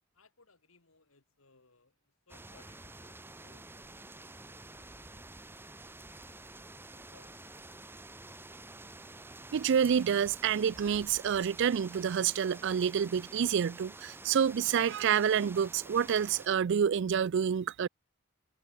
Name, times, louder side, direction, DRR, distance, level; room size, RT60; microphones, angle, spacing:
voice 1, 0.1-3.2 3.4-5.2 6.2-7.9, left 3 dB, 80° left, 3.0 m, -65 dB
sound 1, 2.3-16.5, right 2 dB, 10° right, 1.4 m, -49 dB
voice 2, 9.5-17.9, right 8 dB, 60° right, 0.4 m, -28 dB
head